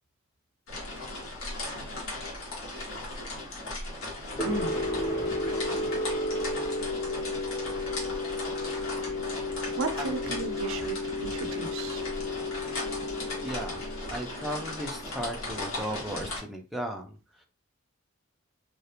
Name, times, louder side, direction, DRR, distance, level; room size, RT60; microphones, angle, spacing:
sound 1, 0.7-16.4, left 2 dB, 80° left, 1.0 m, -37 dB
sound 2, 4.4-15.3, left 2 dB, 25° left, 0.7 m, -33 dB
voice 1, 9.8-12.0, right 3 dB, 80° right, 8 dB, 0.4 m, -34 dB
voice 2, 13.4-17.4, equal, ahead, 1 dB, 0.3 m, -36 dB
2.4 x 2.0 x 2.8 m, 0.33 s
head